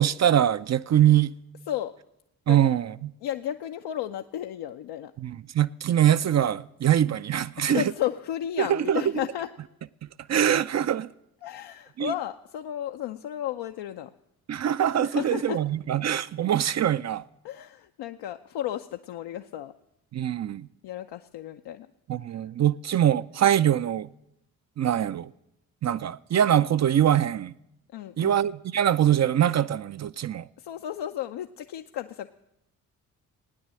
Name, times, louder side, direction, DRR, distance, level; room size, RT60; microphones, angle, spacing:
voice 1, 0.0-1.3 2.5-3.1 5.2-7.8 8.6-9.0 10.3-11.1 12.0-12.1 14.5-17.2 20.1-20.7 22.1-24.1 24.8-25.3 25.8-27.5 28.2-30.5, right 10 dB, 40° right, 0.5 m, -23 dB
voice 2, 2.5-2.8 3.2-5.1 7.6-9.5 11.4-14.1 15.0-15.6 17.4-19.7 20.8-21.9 22.3-22.4 27.9-28.5 30.6-32.3, left 11 dB, 65° left, 0.7 m, -33 dB
17.0 x 9.5 x 7.6 m
hypercardioid pair, 45°, 44 cm